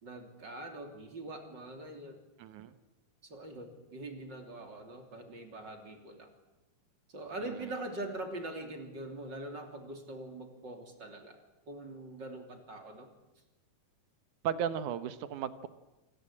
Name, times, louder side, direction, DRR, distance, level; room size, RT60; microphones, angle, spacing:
voice 1, 0.0-2.2 3.2-6.3 7.1-11.4 11.7-13.1, right 1 dB, 30° right, 5 dB, 3.2 m, -43 dB
voice 2, 2.4-2.8 7.4-7.7 14.4-15.7, right 8 dB, 70° right, 13 dB, 2.1 m, -35 dB
27.0 x 19.5 x 8.5 m, 1.0 s
omnidirectional pair, 4.4 m